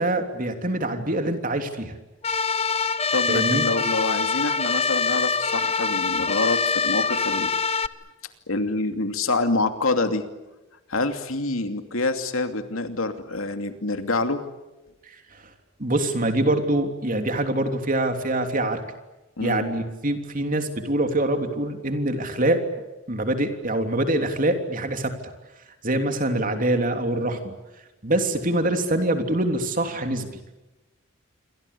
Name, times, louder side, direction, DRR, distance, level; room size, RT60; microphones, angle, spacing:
voice 1, 0.0-1.9 3.3-3.6 15.8-18.8 19.4-22.6 23.1-25.1 25.8-27.5 28.0-30.3, right 1 dB, 40° right, 6 dB, 3.3 m, -24 dB
sound 1, 2.2-7.9, left 5 dB, 30° left, 0.9 m, -24 dB
voice 2, 3.1-7.5 8.5-10.2 10.9-14.4 19.4-19.7, left 2 dB, 80° left, 7 dB, 2.7 m, -26 dB
28.0 x 24.0 x 8.6 m, 1.1 s
head